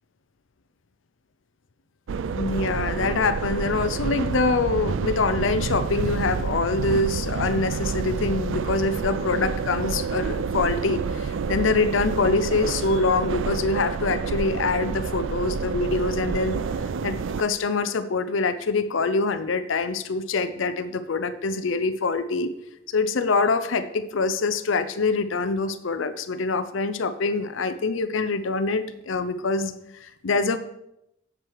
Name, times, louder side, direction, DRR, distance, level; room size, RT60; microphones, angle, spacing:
sound 1, 2.1-17.4, right 5 dB, 70° right, 0.4 m, -28 dB
voice 1, 2.3-16.6 17.0-22.5 22.9-29.7 30.0-30.6, left 3 dB, 70° left, 12 dB, 0.5 m, -25 dB
7.7 x 7.4 x 4.7 m, 0.82 s
head